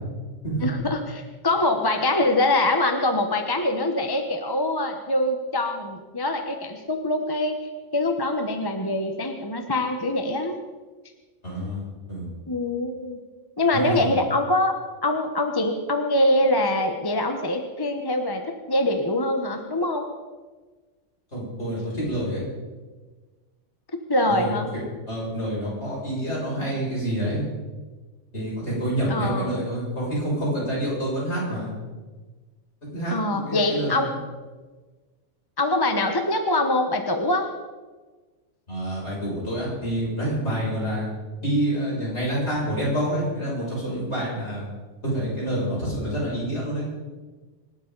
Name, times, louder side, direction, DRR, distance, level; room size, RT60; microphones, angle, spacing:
voice 1, 0.6-10.6 12.5-13.2 13.6-20.1 24.1-24.7 29.1-29.6 33.1-34.1 35.6-37.5, left 1 dB, 20° left, 5 dB, 1.1 m, -24 dB
voice 2, 11.4-11.8 12.1-12.3 13.7-14.1 21.3-22.4 24.3-24.8 25.1-27.4 28.3-31.7 32.9-34.1 38.7-41.1 41.4-44.7 45.0-46.9, right 1 dB, 60° left, -6 dB, 7.4 m, -27 dB
25.5 x 12.5 x 4.0 m, 1.3 s
omnidirectional pair, 1.3 m